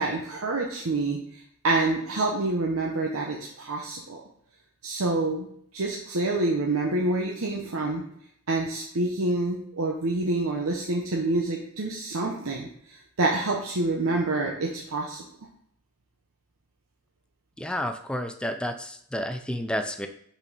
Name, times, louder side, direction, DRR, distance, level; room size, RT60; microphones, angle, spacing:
voice 1, 0.0-4.2 4.8-5.5 5.7-8.0 8.5-15.2, right 2 dB, 90° right, -1 dB, 0.9 m, -27 dB
voice 2, 17.6-20.1, equal, 5° left, 7 dB, 0.5 m, -30 dB
5.9 x 4.3 x 5.3 m, 0.67 s
head